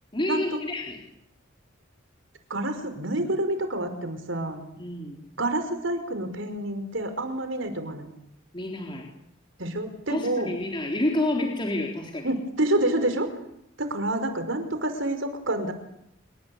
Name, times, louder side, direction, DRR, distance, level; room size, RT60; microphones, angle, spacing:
voice 1, 0.1-1.0 4.8-5.2 8.5-9.1 10.1-12.3, left 1 dB, 25° left, 0 dB, 3.8 m, -29 dB
voice 2, 2.5-4.6 5.4-8.1 9.6-10.5 12.2-13.3 13.8-15.7, right 1 dB, 75° right, 8 dB, 5.1 m, -28 dB
27.5 x 23.5 x 8.5 m, 0.76 s
head